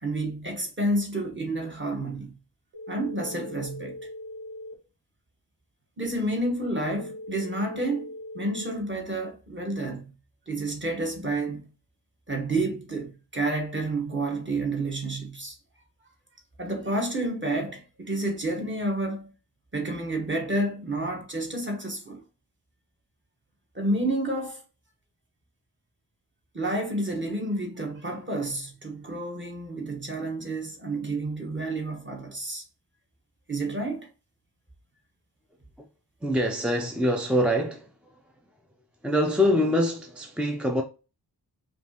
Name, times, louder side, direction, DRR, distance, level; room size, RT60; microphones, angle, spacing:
voice 1, 0.0-2.3 2.9-4.0 6.0-10.0 10.5-11.6 12.3-15.6 16.6-19.3 19.7-22.2 23.7-24.6 26.5-32.6 33.5-34.1, right 2 dB, 30° right, 1.1 m, -30 dB
sound 1, 2.7-4.7 6.7-8.7, left 1 dB, 90° right, 1.3 m, -40 dB
voice 2, 36.2-37.9 39.0-40.8, left 1 dB, 5° right, 0.4 m, -24 dB
5.1 x 2.4 x 2.8 m
wide cardioid pair, 100°, 40 cm